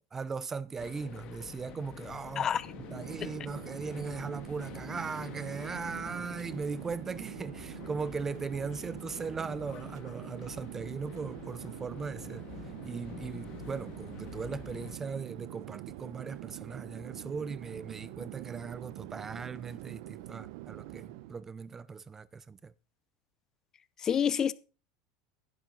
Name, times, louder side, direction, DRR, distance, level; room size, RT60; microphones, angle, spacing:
voice 1, 0.1-2.5 2.8-12.4 12.8-22.7, right 5 dB, 15° right, 0.6 m, -38 dB
sound 1, 0.8-15.0, left 10 dB, 40° left, 1.8 m, -48 dB
voice 2, 2.4-2.7 3.2-3.3 24.0-24.5, left 8 dB, 20° left, 0.7 m, -28 dB
Chatter / Fixed-wing aircraft airplane, 2.5-21.5, right 18 dB, 60° right, 0.7 m, -45 dB
14.0 x 12.0 x 3.9 m
supercardioid pair, 155°, 2 cm